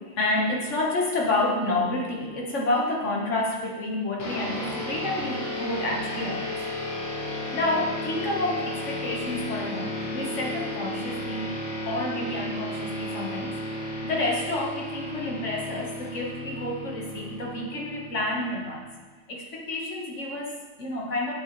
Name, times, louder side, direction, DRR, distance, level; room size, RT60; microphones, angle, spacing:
voice 1, 0.0-6.6 7.5-18.9 19.3-21.3, left 2 dB, 40° left, -2 dB, 1.3 m, -29 dB
sound 1, 4.2-19.0, left 1 dB, 60° left, 2.0 m, -34 dB
9.7 x 7.2 x 3.1 m, 1.4 s
omnidirectional pair, 2.4 m